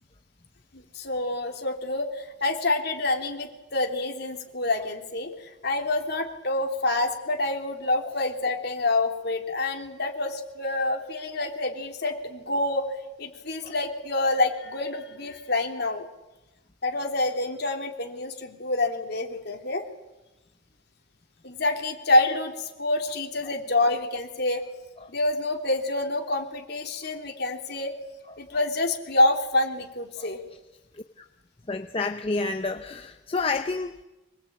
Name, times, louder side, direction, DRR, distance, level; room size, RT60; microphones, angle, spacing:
voice 1, 0.7-5.3 5.6-12.9 13.2-16.1 16.8-19.8 21.4-24.6 25.1-27.9 28.4-30.4, left 2 dB, 50° left, 3 dB, 3.2 m, -27 dB
voice 2, 31.7-34.0, left 3 dB, 30° left, 6 dB, 0.9 m, -29 dB
24.5 x 21.5 x 8.8 m, 1.0 s
head